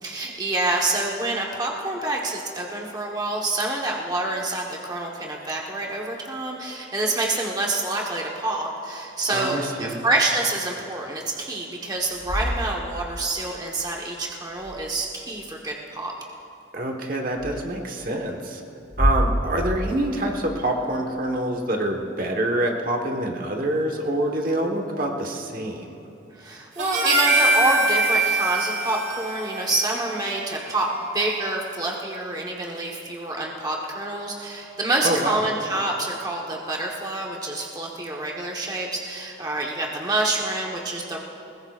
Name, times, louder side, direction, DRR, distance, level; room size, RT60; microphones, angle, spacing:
voice 1, 0.0-16.1 26.3-41.2, right 2 dB, 20° right, -1 dB, 1.1 m, -27 dB
voice 2, 9.3-10.0 16.7-18.6 19.0-26.0 35.0-35.4, right 1 dB, 45° right, 2 dB, 1.2 m, -26 dB
sound 1, 12.0-13.4 14.5-15.2 17.4-17.5 18.8-20.8, equal, ahead, 2.8 m, -28 dB
Harmonica, 26.8-31.3, right 2 dB, 70° right, 1.5 m, -24 dB
21.0 x 20.0 x 2.4 m, 2.8 s
head